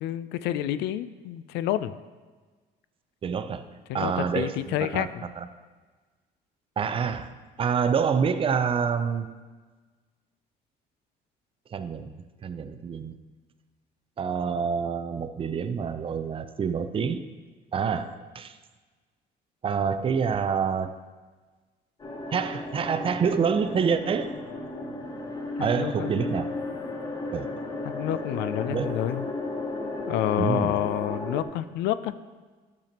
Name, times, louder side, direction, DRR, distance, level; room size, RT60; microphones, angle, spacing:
voice 1, 0.0-1.9 3.9-5.2 25.6-26.1 27.8-29.3 30.1-32.1, left 12 dB, 85° left, 14 dB, 0.4 m, -29 dB
voice 2, 3.2-3.6 3.9-5.5 6.8-7.3 7.6-9.3 11.7-12.1 12.4-13.2 14.2-17.2 17.7-18.6 19.6-21.0 22.3-24.3 25.6-26.5 27.3-27.5 28.7-28.9 30.4-30.8, right 6 dB, 30° right, 10 dB, 0.5 m, -27 dB
sound 1, 22.0-31.4, left 2 dB, 25° left, 1.0 m, -34 dB
10.5 x 6.8 x 2.9 m, 1.4 s
cardioid pair, 110°, 17 cm